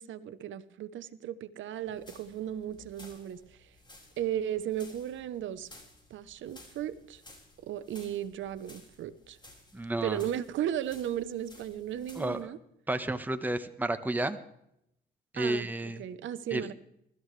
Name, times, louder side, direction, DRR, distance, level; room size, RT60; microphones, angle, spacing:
voice 1, 0.0-3.7 4.2-5.7 6.1-7.2 7.6-9.4 10.0-12.6 15.3-16.7, right 11 dB, 75° right, 14 dB, 0.9 m, -36 dB
sound 1, 1.8-12.4, left 2 dB, 20° left, 6.0 m, -56 dB
voice 2, 9.7-10.2 12.2-12.5 12.9-14.4 15.3-16.0 16.5-16.7, right 1 dB, 10° right, 9 dB, 1.2 m, -31 dB
23.0 x 13.5 x 3.3 m, 0.76 s
cardioid pair, 90°, 20 cm